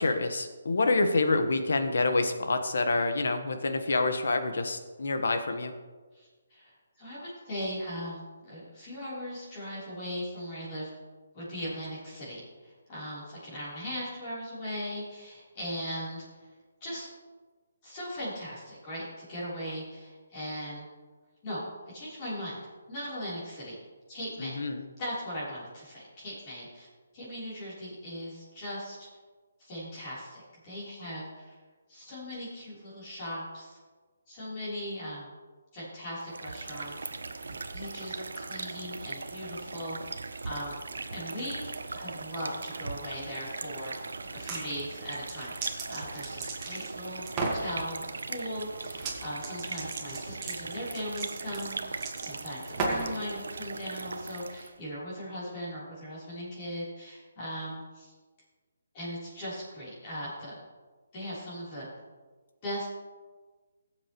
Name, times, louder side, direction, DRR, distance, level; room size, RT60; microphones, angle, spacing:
voice 1, 0.0-5.7 24.4-24.8, left 3 dB, 75° left, 7 dB, 1.3 m, -27 dB
voice 2, 6.1-10.9 11.3-16.5 16.8-17.1 17.8-20.9 21.4-21.6 21.9-22.6 22.9-23.8 24.1-24.6 25.0-26.9 27.1-29.1 29.6-31.6 31.9-33.8 34.3-35.3 35.7-37.1 37.5-43.9 44.3-58.1 58.9-60.6 61.1-61.9 62.6-62.9, equal, 25° left, -9 dB, 3.6 m, -39 dB
sound 1, 36.2-54.8, right 3 dB, 85° right, 0.8 m, -39 dB
sound 2, 44.2-44.6 45.1-46.9 47.3-47.7 48.9-49.2 49.4-53.2, right 3 dB, 20° right, 1.6 m, -34 dB
15.5 x 7.6 x 3.1 m, 1.4 s
hypercardioid pair, 165°, 0 cm